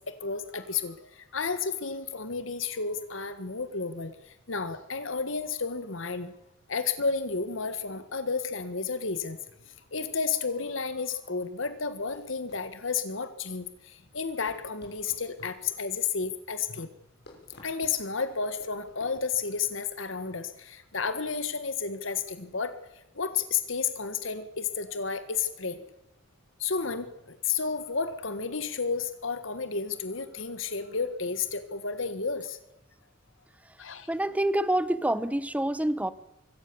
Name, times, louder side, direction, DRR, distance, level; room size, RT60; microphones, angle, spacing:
voice 1, 0.1-6.3 6.7-9.4 9.7-16.9 17.6-22.8 23.2-25.8 26.6-32.6 33.8-34.1, left 5 dB, 75° left, 11 dB, 1.7 m, -32 dB
sound 1, 12.0-19.3, left 1 dB, 55° left, 6.4 m, -56 dB
voice 2, 34.1-36.1, right 1 dB, 5° right, 15 dB, 1.0 m, -27 dB
24.0 x 17.0 x 7.0 m, 0.87 s
head